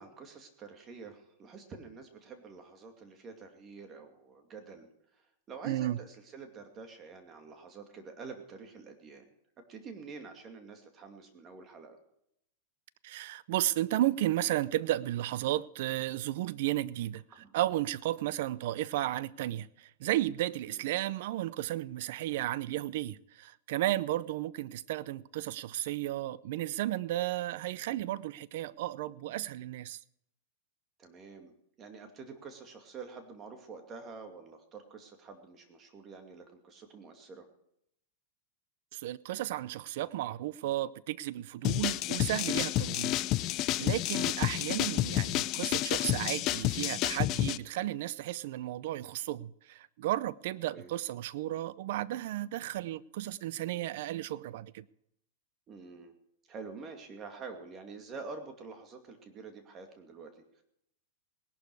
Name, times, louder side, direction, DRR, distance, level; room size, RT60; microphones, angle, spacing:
voice 1, 0.0-4.9 5.1-9.3 9.7-12.0 17.3-17.5 20.7-20.8 31.0-37.5 50.7-50.9 55.7-56.1 56.5-60.6, right 4 dB, 25° right, 2.4 m, -47 dB
voice 2, 5.6-6.0 13.0-30.0 38.9-43.2 43.5-54.9, right 14 dB, 60° right, 0.6 m, -33 dB
sound 1, 41.6-47.6, left 16 dB, 40° left, 0.5 m, -30 dB
19.0 x 11.5 x 4.8 m
supercardioid pair, 140°, 0 cm